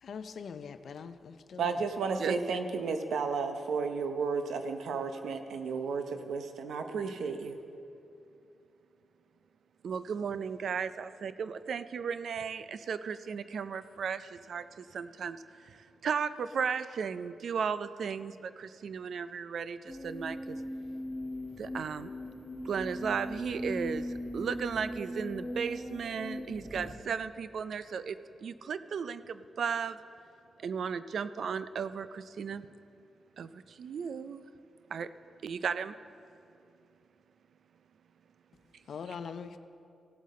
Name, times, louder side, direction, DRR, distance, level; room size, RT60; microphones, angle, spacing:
voice 1, 0.0-1.7 38.9-39.6, left 6 dB, 65° left, 11 dB, 0.5 m, -42 dB
voice 2, 1.6-7.6, right 5 dB, 90° right, 7 dB, 0.7 m, -33 dB
voice 3, 9.8-20.6 21.6-22.1 22.6-30.0 30.6-32.7 33.4-34.4 34.9-35.1 35.4-35.9, right 6 dB, 65° right, 13 dB, 0.4 m, -35 dB
sound 1, 19.9-27.0, left 1 dB, 5° left, 1.0 m, -39 dB
16.5 x 7.5 x 4.2 m, 2.6 s
wide cardioid pair, 125°, 0 cm